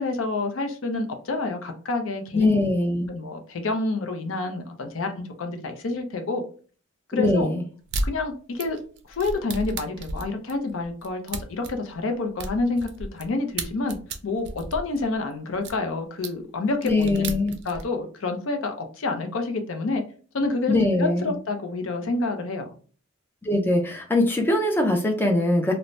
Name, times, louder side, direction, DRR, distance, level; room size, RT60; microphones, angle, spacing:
voice 1, 0.0-2.5 3.1-5.1 5.4-6.4 7.1-7.5 8.0-8.8 9.1-20.0 20.3-22.7, left 3 dB, 75° left, 6 dB, 0.5 m, -28 dB
voice 2, 2.3-3.1 7.1-7.6 16.8-17.5 20.7-21.3 23.4-25.7, left 2 dB, 10° left, 2 dB, 0.4 m, -22 dB
sound 1, 7.9-8.1 8.6-13.3 13.6-15.8 16.2-16.3 16.7-17.8, right 2 dB, 55° right, 0.4 m, -33 dB
2.5 x 2.0 x 3.1 m, 0.40 s
head